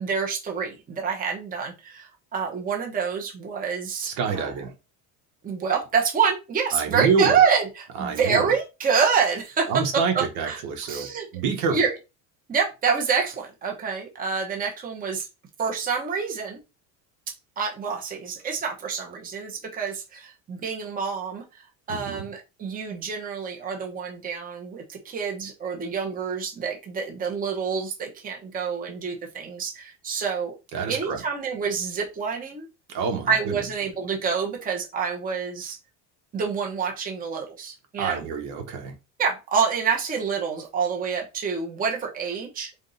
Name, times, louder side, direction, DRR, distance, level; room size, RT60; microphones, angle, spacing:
voice 1, 0.0-4.5 5.4-9.7 10.4-10.6 10.9-11.3 11.7-11.9 12.5-15.3 15.6-16.6 17.6-30.5 30.9-32.7 33.3-35.8 36.3-38.2 39.2-42.7, right 6 dB, 20° right, 0.9 m, -27 dB
voice 2, 4.0-4.7 6.7-7.4 8.0-8.5 9.7-11.1 11.3-11.8 21.9-22.2 30.7-31.2 32.9-33.6 38.0-38.9, right 5 dB, 75° right, 1.6 m, -27 dB
3.8 x 3.5 x 4.0 m
cardioid pair, 150°, 40 cm